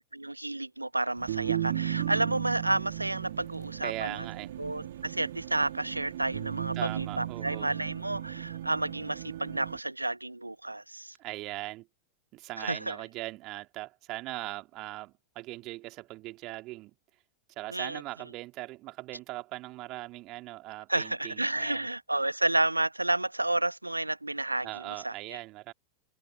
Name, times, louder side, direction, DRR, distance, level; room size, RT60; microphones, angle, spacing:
voice 1, 0.1-4.2 4.6-11.1 12.6-13.0 17.7-18.0 20.9-25.1, right 2 dB, 85° right, 1.1 m, -31 dB
sound 1, 1.2-9.8, right 12 dB, 60° right, 1.7 m, -36 dB
voice 2, 3.8-4.5 6.8-7.7 11.2-11.9 12.3-16.9 17.6-21.8 24.6-25.7, right 19 dB, 40° right, 2.4 m, -40 dB
open air
figure-of-eight pair, 90°, 0 cm